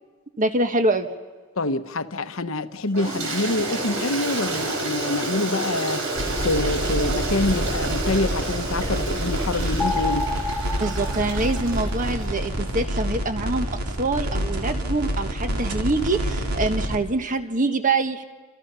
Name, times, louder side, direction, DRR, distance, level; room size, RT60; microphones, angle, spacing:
voice 1, 0.4-1.1 4.5-4.6 10.8-18.2, right 2 dB, 35° right, 1.5 m, -25 dB
voice 2, 1.6-6.1 6.4-10.3, left 2 dB, 60° left, 1.0 m, -26 dB
Toilet flush, 2.9-12.3, right 2 dB, 60° right, 5.4 m, -30 dB
sound 1, 6.2-17.0, equal, 85° right, 3.0 m, -28 dB
sound 2, 9.8-12.2, left 3 dB, 5° left, 0.8 m, -30 dB
29.5 x 27.5 x 5.6 m
head